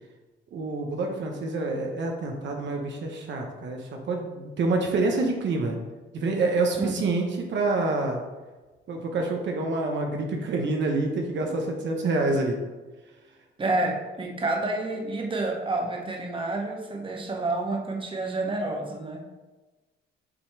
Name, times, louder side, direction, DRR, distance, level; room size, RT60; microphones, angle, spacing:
voice 1, 0.5-5.8 6.1-8.2 8.9-12.6, right 3 dB, 65° right, 2 dB, 1.0 m, -27 dB
voice 2, 13.6-19.3, right 2 dB, 25° right, 1 dB, 1.1 m, -29 dB
7.6 x 3.0 x 4.5 m, 1.2 s
cardioid pair, 90°, 20 cm